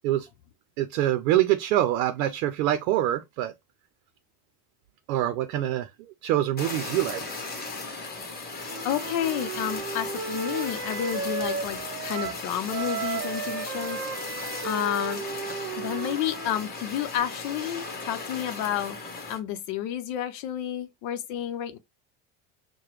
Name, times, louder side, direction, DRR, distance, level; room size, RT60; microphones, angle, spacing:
voice 1, 0.8-3.5 5.1-5.9 6.2-7.2, right 13 dB, 85° right, 0.6 m, -25 dB
Fire, 6.6-19.4, left 3 dB, 25° left, 1.1 m, -37 dB
Wind instrument woodwind instrument, 8.7-12.4 12.7-16.7, right 6 dB, 30° right, 0.7 m, -34 dB
voice 2, 8.8-14.4 14.6-15.2 15.8-19.0 19.3-21.8, left 11 dB, 75° left, 0.7 m, -30 dB
4.8 x 2.1 x 3.0 m
supercardioid pair, 105°, 41 cm